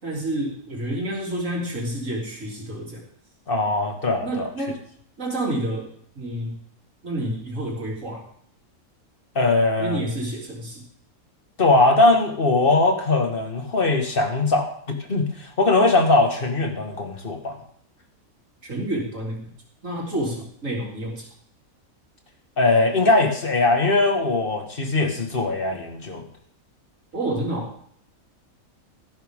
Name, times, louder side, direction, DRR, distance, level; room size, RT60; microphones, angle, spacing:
voice 1, 0.0-3.0 4.2-4.8 5.2-5.9 6.2-6.6 7.0-8.3 9.8-10.8 18.6-19.5 19.8-21.3 27.1-27.7, right 1 dB, 60° right, -2 dB, 3.8 m, -29 dB
voice 2, 3.5-4.5 9.4-10.0 11.6-17.6 22.6-26.3, left 2 dB, 40° left, 3 dB, 2.1 m, -20 dB
14.5 x 12.0 x 3.7 m, 0.65 s
omnidirectional pair, 1.5 m